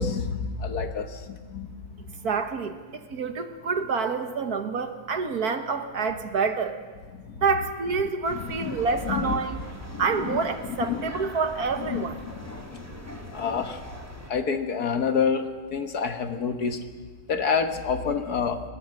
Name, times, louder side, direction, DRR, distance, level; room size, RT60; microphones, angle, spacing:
voice 1, 0.0-1.7 7.4-7.5 8.4-8.8 9.1-9.4 9.9-10.4 10.9-11.0 11.9-12.0 12.3-13.8 14.3-16.8 17.3-18.6, left 6 dB, 50° left, 8 dB, 1.6 m, -28 dB
voice 2, 2.2-2.7 3.1-6.8 7.4-9.6 10.0-12.2, right 5 dB, 50° right, 8 dB, 1.5 m, -27 dB
sound 1, 8.2-14.3, right 1 dB, 10° right, 1.7 m, -42 dB
20.5 x 20.0 x 7.6 m, 1.5 s
omnidirectional pair, 2.4 m